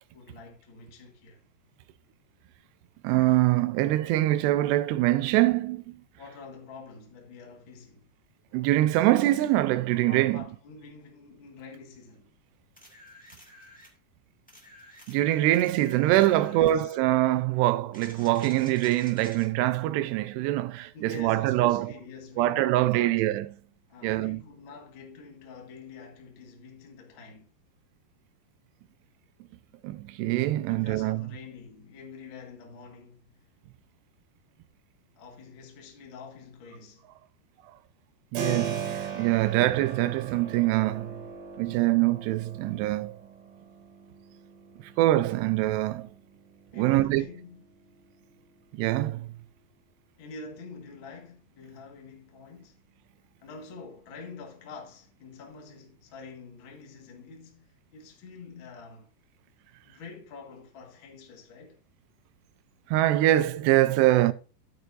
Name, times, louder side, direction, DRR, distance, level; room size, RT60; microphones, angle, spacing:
voice 1, 0.1-1.4 6.2-8.1 10.1-12.3 16.2-17.0 20.9-23.2 23.9-27.5 30.6-33.5 35.1-37.1 39.4-39.7 46.7-47.6 50.2-52.8 53.4-59.1 59.8-61.8, left 4 dB, 50° left, 1.6 m, -46 dB
voice 2, 3.0-6.0 8.5-10.4 15.1-21.9 22.4-23.5 24.0-24.4 29.8-31.3 38.3-41.2 41.6-43.2 45.0-46.1 46.7-47.3 48.7-49.3 62.9-64.3, right 15 dB, 85° right, 2.8 m, -24 dB
sound 1, 12.8-14.0 14.5-16.8 17.9-19.5 22.9-23.0, left 1 dB, 5° left, 0.8 m, -51 dB
Keyboard (musical), 38.3-49.0, right 6 dB, 65° right, 3.8 m, -40 dB
13.0 x 7.9 x 2.6 m
omnidirectional pair, 4.7 m